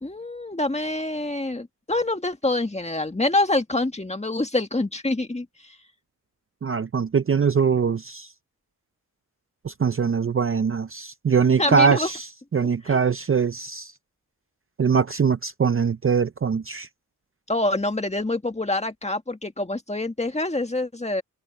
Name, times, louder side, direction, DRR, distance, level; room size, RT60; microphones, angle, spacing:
voice 1, 0.0-5.8 11.6-12.1 12.9-13.0 17.5-21.2, left 2 dB, 20° left, 1.8 m, -26 dB
voice 2, 6.6-8.3 9.6-12.2 12.5-13.9 14.8-16.9, right 6 dB, 35° right, 0.5 m, -22 dB
wide cardioid pair, 100°, 36 cm